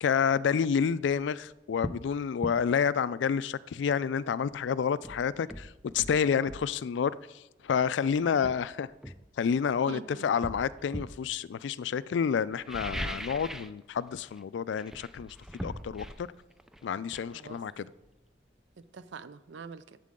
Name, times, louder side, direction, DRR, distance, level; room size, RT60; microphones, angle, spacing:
voice 1, 0.0-8.9 9.4-15.4 15.6-16.3 16.8-17.9, left 7 dB, 70° left, 0.3 m, -29 dB
sound 1, 1.1-1.2 1.8-2.1 2.4-2.6 4.5-4.6 5.0-6.7 7.8-7.9 8.4-9.8 10.4-11.2 12.5-13.8 14.1-14.4 14.7-18.3 18.6-18.7, equal, 5° right, 0.4 m, -40 dB
voice 2, 8.2-8.6 9.9-10.2 17.3-17.6 18.9-20.0, right 4 dB, 70° right, 0.5 m, -44 dB
11.5 x 7.5 x 3.7 m
head